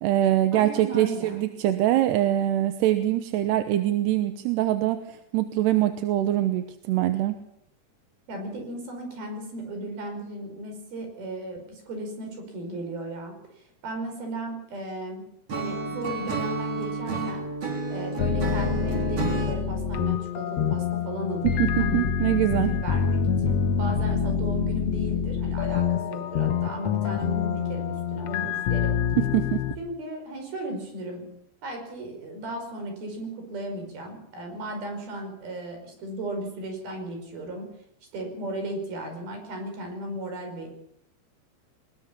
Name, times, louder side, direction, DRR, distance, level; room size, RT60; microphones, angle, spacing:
voice 1, 0.0-7.4 21.9-22.7 29.2-29.6, right 13 dB, 85° right, 9 dB, 3.1 m, -24 dB
voice 2, 0.5-1.4 8.3-15.2 15.5-17.5 17.9-22.1 22.5-29.0 29.8-31.3 31.6-37.7 38.1-40.7, right 1 dB, 65° right, 4 dB, 6.8 m, -35 dB
Acoustic guitar / Strum, 15.5-19.6, right 2 dB, 40° right, 4.3 m, -30 dB
sound 1, 18.2-29.7, left 7 dB, 80° left, 1.4 m, -26 dB
22.5 x 20.5 x 7.0 m, 0.77 s
omnidirectional pair, 4.6 m